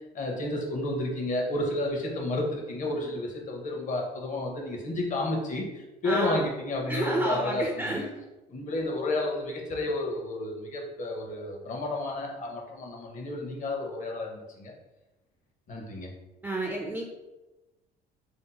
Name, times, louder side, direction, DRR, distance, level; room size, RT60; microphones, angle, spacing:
voice 1, 0.1-8.1 8.5-14.7 15.7-16.1, left 2 dB, 50° left, 0 dB, 0.8 m, -31 dB
voice 2, 6.0-6.4 6.9-8.2 16.4-17.0, right 1 dB, 10° right, -1 dB, 0.3 m, -30 dB
2.7 x 2.0 x 4.0 m, 1.0 s
cardioid pair, 110°, 17 cm